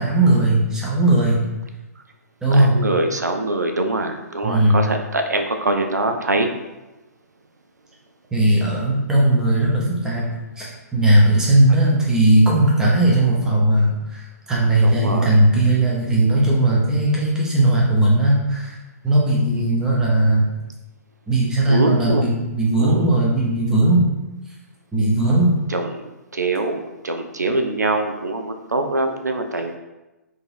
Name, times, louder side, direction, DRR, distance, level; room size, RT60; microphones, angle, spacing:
voice 1, 0.0-1.4 2.4-2.8 4.4-4.8 8.3-10.3 10.6-18.8 19.0-20.5 21.3-24.1 24.9-25.5, right 1 dB, 5° right, -5 dB, 0.7 m, -17 dB
voice 2, 2.5-6.5 14.8-15.4 21.7-22.2 22.8-23.1 25.7-29.8, right 2 dB, 80° right, 5 dB, 0.4 m, -23 dB
3.8 x 2.5 x 2.5 m, 1.0 s
figure-of-eight pair, 125°, 9 cm